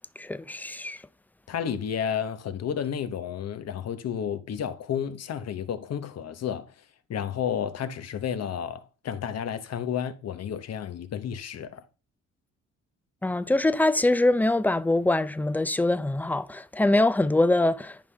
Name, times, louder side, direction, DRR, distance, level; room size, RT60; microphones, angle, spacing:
voice 1, 0.2-1.0 13.2-18.0, left 2 dB, 5° left, 0.5 m, -23 dB
voice 2, 1.5-6.7 7.1-11.8, left 8 dB, 55° left, 1.0 m, -31 dB
10.5 x 5.5 x 3.4 m
cardioid pair, 90°, 30 cm